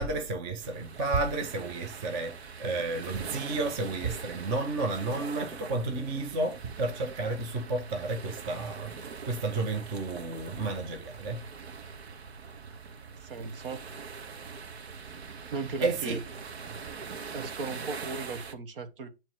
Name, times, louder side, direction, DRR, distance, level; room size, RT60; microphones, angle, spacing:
voice 1, 0.0-11.4 15.8-16.2, right 3 dB, 15° right, 0.4 m, -32 dB
sound 1, 0.6-18.5, right 5 dB, 75° right, 1.1 m, -43 dB
voice 2, 13.2-13.8 15.5-16.2 17.3-19.1, right 4 dB, 55° right, 1.3 m, -37 dB
8.7 x 3.1 x 4.7 m
hypercardioid pair, 140°, 32 cm